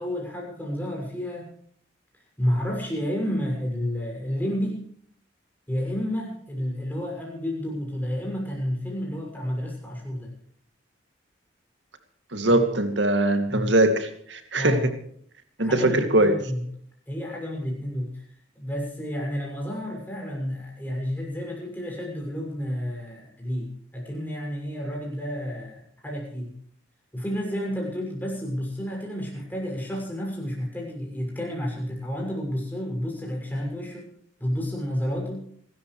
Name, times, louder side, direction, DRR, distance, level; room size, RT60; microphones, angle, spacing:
voice 1, 0.0-1.5 2.4-4.8 5.7-10.3 12.4-12.6 13.5-13.7 14.5-14.8 15.6-16.6 17.1-18.3 18.5-26.5 27.1-34.1 34.4-35.4, equal, 10° left, -2 dB, 6.7 m, -30 dB
voice 2, 12.3-14.9 15.6-16.4, right 1 dB, 70° right, 7 dB, 2.5 m, -22 dB
27.0 x 13.5 x 3.3 m, 0.62 s
head